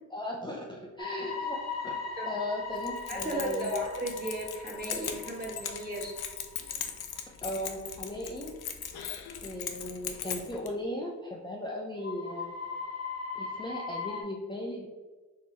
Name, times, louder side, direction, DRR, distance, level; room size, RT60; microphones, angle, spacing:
voice 1, 0.1-1.6 1.8-1.9 2.2-3.7 7.4-8.5 9.4-12.5 13.3-14.9, left 1 dB, 10° left, -2 dB, 0.5 m, -37 dB
sound 1, 1.0-7.7 8.1-8.2 8.6-8.7 12.0-14.2, left 4 dB, 40° left, 1.0 m, -39 dB
Keys jangling, 2.8-10.7, left 8 dB, 80° left, 0.5 m, -39 dB
voice 2, 3.1-6.1, right 1 dB, 25° right, -2 dB, 1.4 m, -35 dB
4.3 x 2.8 x 3.3 m, 1.3 s
cardioid pair, 55°, 37 cm